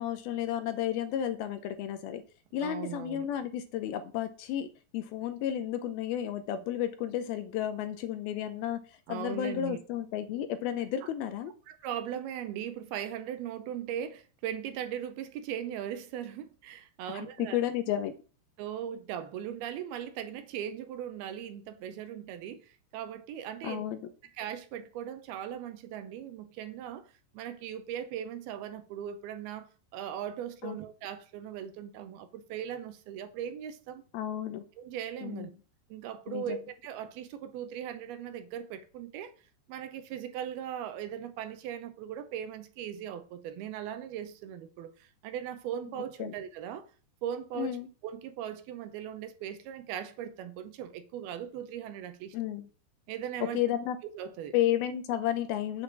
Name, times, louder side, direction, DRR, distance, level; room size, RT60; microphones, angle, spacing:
voice 1, 0.0-2.2 2.5-8.8 9.1-11.5 17.1-18.1 23.6-24.0 30.6-30.8 34.1-34.6 35.2-35.5 36.3-36.6 46.2-46.3 47.6-47.9 52.3-52.7 53.5-54.0 54.5-55.8, left 11 dB, 80° left, 2.4 m, -32 dB
voice 2, 2.6-3.3 9.1-9.8 11.0-11.1 11.7-17.6 18.6-23.8 24.4-27.1 27.3-34.0 34.8-35.5 35.9-39.3 39.7-46.9 47.2-47.8 48.0-52.4 53.1-53.6 54.1-54.5, right 10 dB, 80° right, 2.6 m, -39 dB
8.2 x 5.0 x 7.3 m
omnidirectional pair, 4.8 m